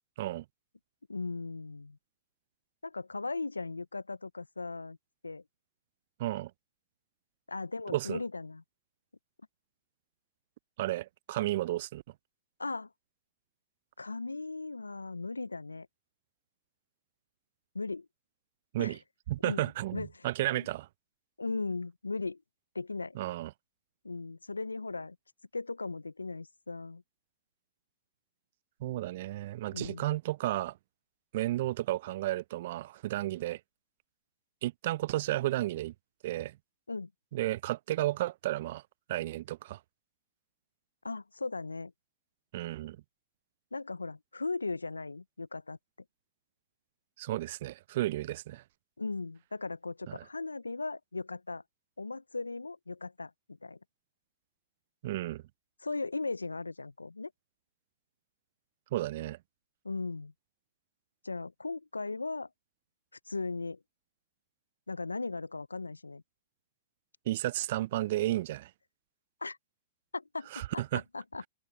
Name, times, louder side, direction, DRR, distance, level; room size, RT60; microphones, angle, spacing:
voice 1, 1.1-2.0 2.8-5.0 5.2-5.4 7.5-8.6 12.6-12.9 14.0-15.9 17.7-18.1 18.8-19.0 19.4-20.2 20.6-20.7 21.4-22.4 22.7-23.2 24.0-25.2 25.5-27.0 29.7-30.1 36.9-37.1 41.0-41.9 43.7-45.8 49.0-51.6 52.0-53.8 55.8-57.3 59.8-60.3 61.2-62.5 63.3-63.8 64.9-66.2 69.4-69.6 70.1-71.4, left 3 dB, 90° left, 0.6 m, -37 dB
voice 2, 6.2-6.5 7.9-8.2 10.8-12.0 18.7-19.0 19.3-20.9 23.1-23.5 28.8-30.8 31.3-33.6 34.6-35.9 36.2-36.6 37.3-38.8 39.1-39.8 42.5-43.0 47.2-48.6 50.1-50.2 55.0-55.4 58.9-59.4 67.3-68.7 70.5-71.0, right 15 dB, 55° right, 0.6 m, -33 dB
figure-of-eight pair, 105°, 0 cm